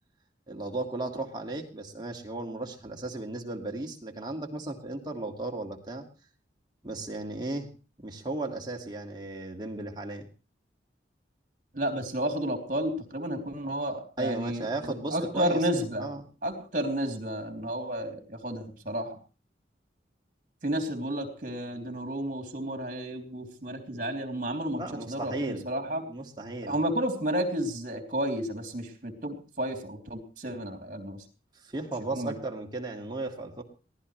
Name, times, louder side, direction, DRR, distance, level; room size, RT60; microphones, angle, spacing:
voice 1, 0.5-6.0 6.8-7.7 8.0-10.3 14.2-16.2 24.7-25.7 26.1-26.8 31.6-33.6, right 2 dB, 25° right, 1 dB, 2.2 m, -35 dB
voice 2, 11.7-16.1 16.4-19.2 20.6-26.0 26.7-31.2 32.1-32.3, right 1 dB, 45° right, 5 dB, 3.2 m, -32 dB
22.5 x 16.5 x 3.3 m, 0.35 s
head